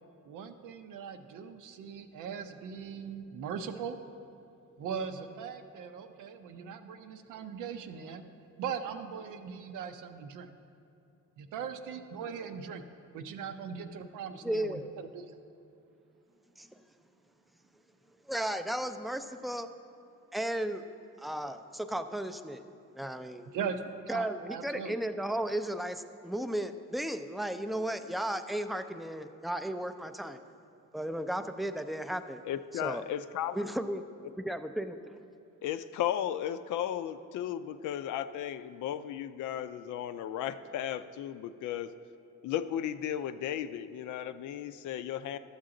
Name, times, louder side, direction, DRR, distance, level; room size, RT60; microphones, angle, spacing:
voice 1, 0.2-4.0 4.8-8.3 8.6-10.5 11.4-12.8 13.1-14.8 15.1-15.4 23.5-24.9, right 6 dB, 85° right, 8 dB, 0.7 m, -39 dB
voice 2, 14.4-14.9 16.6-16.7 18.3-19.7 20.3-20.8 21.2-22.6 22.9-23.5 24.1-30.4 30.9-32.4 32.7-33.0 33.5-34.0 34.4-35.2, right 1 dB, ahead, 9 dB, 0.4 m, -34 dB
voice 3, 32.4-33.6 35.6-41.9 42.4-45.4, left 10 dB, 75° left, 12 dB, 0.5 m, -35 dB
12.0 x 7.3 x 3.8 m, 2.7 s
cardioid pair, 90°, 30 cm